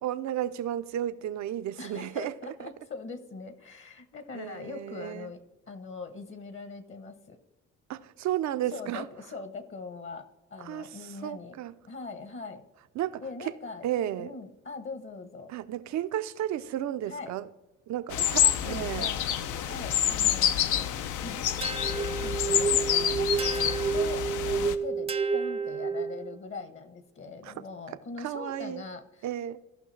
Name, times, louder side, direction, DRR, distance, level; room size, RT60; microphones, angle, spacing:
voice 1, 0.0-2.7 4.3-5.3 7.9-9.1 10.6-11.7 13.0-13.5 13.8-14.3 15.5-17.5 17.9-19.1 27.4-27.5 28.2-28.8 29.2-29.6, right 12 dB, 65° right, 0.5 m, -33 dB
voice 2, 1.8-7.4 8.7-11.6 11.9-12.6 13.2-13.9 14.2-15.5 17.1-17.4 18.1-19.2 19.6-23.3 23.6-29.3, left 4 dB, 40° left, 0.9 m, -42 dB
sound 1, 18.1-24.7, left 10 dB, 80° left, 0.6 m, -27 dB
sound 2, 21.6-26.4, right 5 dB, 20° right, 0.5 m, -30 dB
15.5 x 5.5 x 3.2 m
cardioid pair, 90°, 30 cm